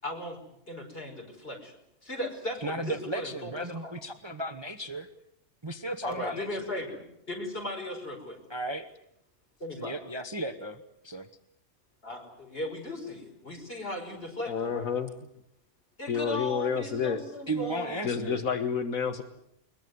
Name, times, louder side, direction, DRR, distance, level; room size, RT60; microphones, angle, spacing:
voice 1, 0.0-0.4 0.7-1.7 2.0-3.5 3.8-3.9 6.0-8.4 9.6-10.0 12.0-14.9 16.0-18.0, left 1 dB, 40° left, 2 dB, 5.5 m, -37 dB
voice 2, 2.6-5.1 5.6-6.7 8.5-8.9 9.8-11.3 17.5-18.4, right 1 dB, 20° right, 9 dB, 1.1 m, -35 dB
voice 3, 14.5-15.1 16.1-17.2 18.0-19.2, left 6 dB, 75° left, 7 dB, 1.8 m, -29 dB
22.0 x 22.0 x 9.5 m, 0.77 s
omnidirectional pair, 1.5 m